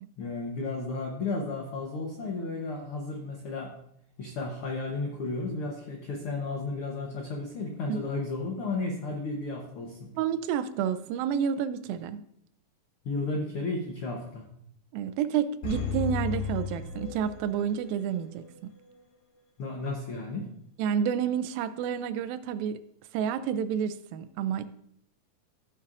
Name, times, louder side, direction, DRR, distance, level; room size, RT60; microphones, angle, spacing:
voice 1, 0.2-3.7 4.2-10.1 13.0-14.5 19.6-20.5, left 3 dB, 80° left, 1 dB, 1.2 m, -33 dB
voice 2, 10.2-12.2 14.9-18.5 20.8-22.8 23.1-24.6, right 8 dB, 90° right, 13 dB, 2.4 m, -29 dB
sound 1, 15.6-17.8 18.1-18.2, left 5 dB, 60° left, 2.7 m, -33 dB
15.0 x 7.5 x 2.5 m, 0.70 s
omnidirectional pair, 4.1 m